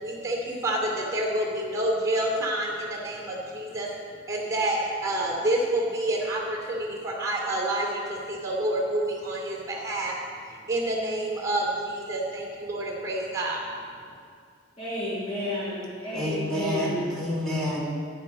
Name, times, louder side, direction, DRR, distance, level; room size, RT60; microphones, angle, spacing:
voice 1, 0.0-3.9 4.3-10.1 10.7-13.6, right 1 dB, 15° right, -2 dB, 2.3 m, -28 dB
voice 2, 14.8-17.1, left 1 dB, 30° left, -8 dB, 1.9 m, -31 dB
voice 3, 16.1-17.9, equal, 5° left, -6 dB, 2.8 m, -29 dB
14.0 x 9.5 x 4.2 m, 2.1 s
head